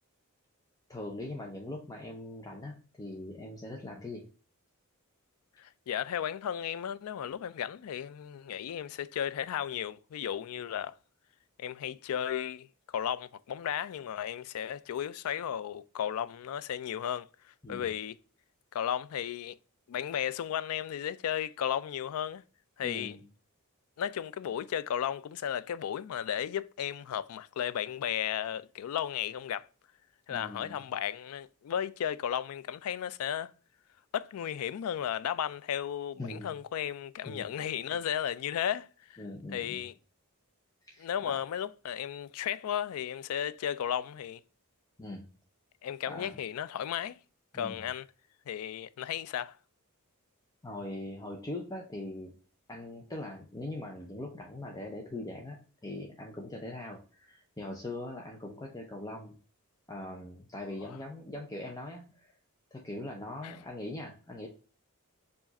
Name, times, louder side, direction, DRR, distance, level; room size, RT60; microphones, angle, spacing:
voice 1, 0.9-4.2 17.6-17.9 22.8-23.2 30.3-30.8 36.2-36.5 37.3-37.5 37.9-38.0 39.2-39.8 40.8-41.4 45.0-45.3 46.0-46.3 47.5-47.8 50.6-52.3 52.7-59.4 59.9-62.4 62.7-64.5, left 1 dB, 15° left, 0.6 m, -41 dB
voice 2, 5.6-10.9 11.6-18.1 18.7-19.6 19.9-22.4 22.8-23.2 24.0-29.7 30.3-33.5 34.1-39.2 39.5-39.9 41.0-44.4 45.8-47.2 47.5-48.1 48.5-49.6 60.9-61.0 63.4-63.5, left 9 dB, 70° left, 0.3 m, -34 dB
4.7 x 2.5 x 4.0 m
head